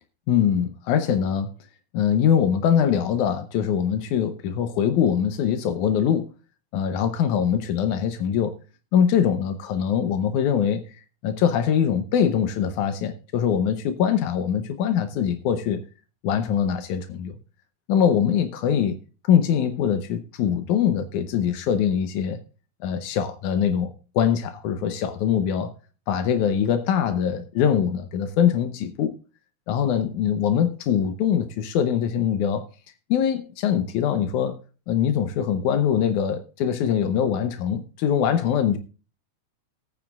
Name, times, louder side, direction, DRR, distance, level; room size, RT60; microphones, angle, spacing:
voice 1, 0.3-1.5 1.9-6.3 6.7-8.6 8.9-10.9 11.2-15.8 16.2-17.4 17.9-19.0 19.3-22.4 22.8-25.7 26.1-29.2 29.7-32.7 33.1-34.6 34.9-38.8, left 8 dB, 90° left, 2.3 m, -23 dB
19.5 x 9.1 x 2.4 m
omnidirectional pair, 3.4 m